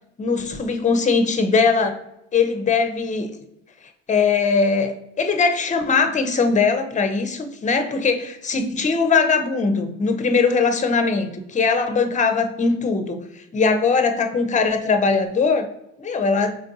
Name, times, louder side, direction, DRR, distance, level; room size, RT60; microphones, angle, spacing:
voice 1, 0.2-2.0 2.3-3.3 4.1-13.2 13.5-15.7 16.0-16.6, left 4 dB, 25° left, 7 dB, 0.5 m, -20 dB
4.2 x 2.5 x 2.6 m, 0.82 s
cardioid pair, 90°, 30 cm